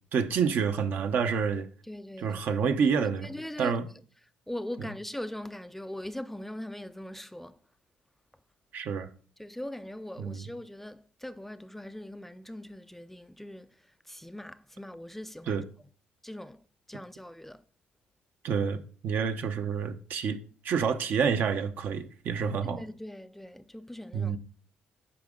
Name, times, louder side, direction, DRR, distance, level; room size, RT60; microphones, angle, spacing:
voice 1, 0.1-1.7 2.2-3.9 8.7-9.1 10.2-10.4 15.5-15.6 18.4-20.4 20.6-22.8 24.1-24.4, right 6 dB, 65° right, 0.8 m, -28 dB
voice 2, 1.9-2.4 3.0-3.8 4.5-7.6 9.4-13.7 14.1-15.6 16.2-16.6 16.9-17.6 22.6-24.4, left 1 dB, 5° left, 0.3 m, -41 dB
8.8 x 4.9 x 3.7 m
cardioid pair, 80°, 4 cm